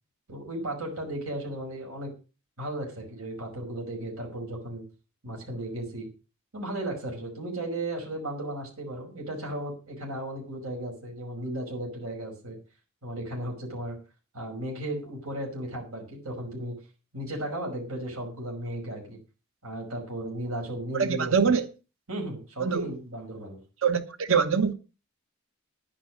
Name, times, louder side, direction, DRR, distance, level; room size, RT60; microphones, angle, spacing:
voice 1, 0.3-2.1 2.6-4.8 5.2-6.1 6.5-12.6 13.0-14.0 14.3-16.8 17.1-19.2 19.6-21.3 22.1-23.6, right 1 dB, 85° right, 5.4 m, -35 dB
voice 2, 20.9-21.6 22.6-22.9 23.8-24.7, right 6 dB, 65° right, 1.1 m, -24 dB
10.5 x 10.5 x 6.1 m
head